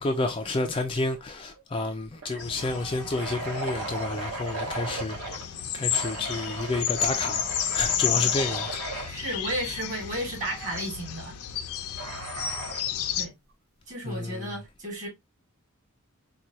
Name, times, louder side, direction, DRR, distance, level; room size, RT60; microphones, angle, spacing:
voice 1, 0.0-5.4 5.7-9.2 14.0-14.5, left 2 dB, 25° left, 0.3 m, -30 dB
sound 1, 1.0-1.2 1.5-1.6 2.2-5.5 5.9-9.1 10.4-10.8 12.0-12.9, right 2 dB, 65° right, 1.0 m, -37 dB
sound 2, 2.4-13.3, left 9 dB, 75° left, 0.5 m, -32 dB
voice 2, 9.0-11.4 13.2-13.3 13.9-15.1, right 1 dB, 35° right, 1.7 m, -33 dB
4.4 x 2.3 x 2.7 m
head